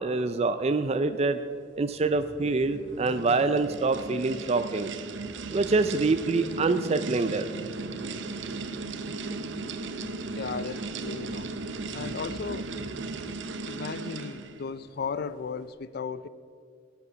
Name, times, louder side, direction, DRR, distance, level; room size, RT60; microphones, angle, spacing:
voice 1, 0.0-1.4 1.8-4.9 5.5-7.5, right 3 dB, 35° right, 9 dB, 0.4 m, -25 dB
sound 1, 2.0-13.2, equal, 10° left, 4.4 m, -46 dB
sound 2, 2.5-14.7, right 3 dB, 70° right, 0.8 m, -37 dB
voice 2, 10.4-11.6 11.9-12.7 13.6-16.3, left 5 dB, 55° left, 15 dB, 0.4 m, -35 dB
17.5 x 8.2 x 6.1 m, 2.2 s
head